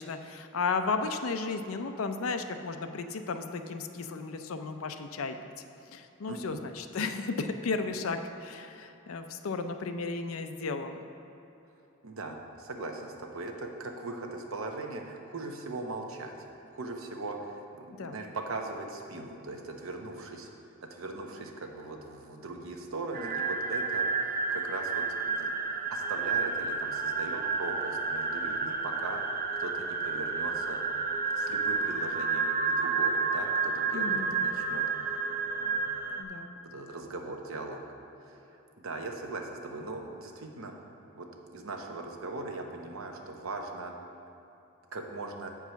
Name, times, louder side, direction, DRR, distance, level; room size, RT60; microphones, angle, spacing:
voice 1, 0.0-5.4 5.9-11.1 18.0-18.2 33.9-34.4 36.2-36.6, left 4 dB, 85° left, 7 dB, 0.5 m, -34 dB
voice 2, 6.3-6.6 12.0-16.4 16.7-20.5 20.8-25.5 25.9-30.8 31.3-35.2 35.5-35.8 36.6-37.8 38.2-38.4 38.8-40.8 41.1-43.9 44.9-45.5, right 2 dB, 80° right, 3 dB, 0.9 m, -40 dB
sound 1, 23.1-36.2, right 4 dB, 45° right, 0.6 m, -30 dB
7.9 x 4.7 x 5.8 m, 3.0 s
head